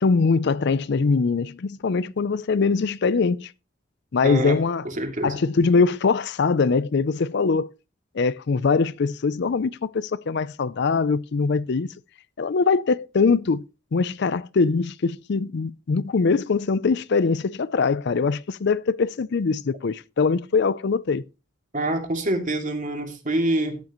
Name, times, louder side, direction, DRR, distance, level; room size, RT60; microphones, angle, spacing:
voice 1, 0.0-3.5 4.1-4.8 5.2-7.7 8.1-11.9 12.4-13.6 13.9-21.2, left 4 dB, 55° left, 0.5 m, -22 dB
voice 2, 4.2-5.4 21.7-23.8, right 1 dB, 40° right, 2.5 m, -26 dB
14.0 x 9.6 x 3.0 m
head